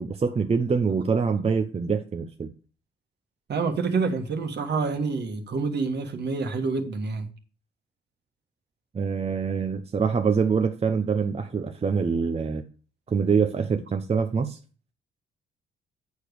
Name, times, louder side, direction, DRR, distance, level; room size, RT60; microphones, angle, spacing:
voice 1, 0.0-2.5 8.9-12.6 13.1-14.6, right 5 dB, 30° right, 0.7 m, -25 dB
voice 2, 3.5-7.3, right 4 dB, 55° right, 1.6 m, -27 dB
8.1 x 5.1 x 6.5 m
cardioid pair, 80°, 21 cm